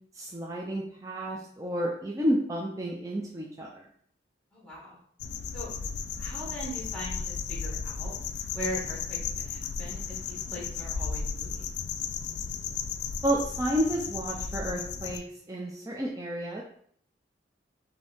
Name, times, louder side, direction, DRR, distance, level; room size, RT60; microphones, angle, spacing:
voice 1, 0.1-3.9 13.2-16.6, equal, 20° right, -2 dB, 0.5 m, -31 dB
voice 2, 4.5-5.0 5.5-5.7 6.2-8.1 8.5-11.7, equal, 5° left, -6 dB, 1.7 m, -40 dB
sound 1, 5.2-15.2, left 6 dB, 70° left, 0.3 m, -34 dB
5.1 x 2.7 x 3.5 m, 0.63 s
head